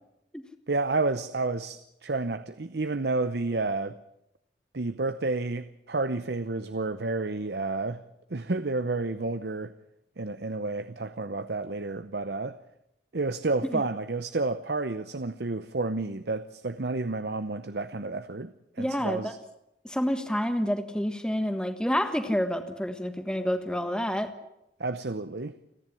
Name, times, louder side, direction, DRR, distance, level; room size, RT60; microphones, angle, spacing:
voice 1, 0.7-4.0 4.7-8.0 8.3-9.7 10.2-12.6 13.1-19.4 24.8-25.5, right 3 dB, 65° right, 0.8 m, -30 dB
voice 2, 18.8-19.3 19.8-24.3, equal, 5° left, 1.4 m, -28 dB
29.5 x 11.0 x 9.9 m
head